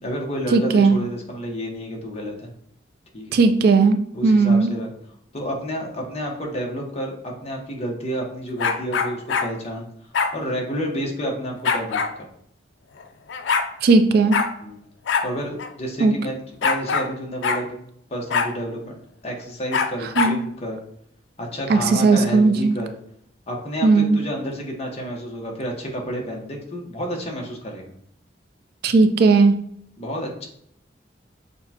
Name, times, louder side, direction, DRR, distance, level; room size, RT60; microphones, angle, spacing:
voice 1, 0.0-2.5 3.1-3.4 4.1-4.9 5.3-9.9 10.3-12.3 14.6-14.8 15.2-17.8 18.1-19.0 19.2-20.8 21.4-22.9 23.5-27.9 30.0-30.5, equal, 35° left, 0 dB, 1.0 m, -30 dB
voice 2, 0.5-1.0 3.3-4.7 13.8-14.4 16.0-16.1 20.2-20.4 21.7-22.8 23.8-24.2 28.8-29.6, right 4 dB, 55° right, 9 dB, 0.3 m, -16 dB
sound 1, 8.6-9.5 10.1-10.3 11.6-12.1 13.0-13.1 13.3-13.7 14.3-14.5 15.1-15.3 15.6-15.7 16.6-17.1 17.4-17.6 18.3-18.5 19.7-20.4, left 5 dB, 75° left, 0.4 m, -22 dB
6.6 x 2.2 x 2.8 m, 0.69 s
head